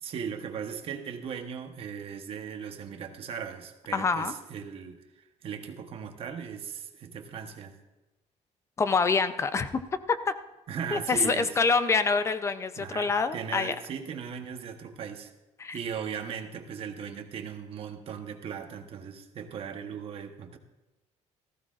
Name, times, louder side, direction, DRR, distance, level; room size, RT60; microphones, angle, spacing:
voice 1, 0.0-7.8 10.7-11.6 12.8-15.3 15.7-20.6, right 7 dB, 50° right, 6 dB, 1.1 m, -38 dB
voice 2, 3.9-4.3 8.8-9.8 10.1-10.4 10.9-13.8 15.6-15.8, left 4 dB, 20° left, 11 dB, 0.5 m, -26 dB
18.5 x 15.0 x 2.5 m, 1.1 s
cardioid pair, 170°, 13 cm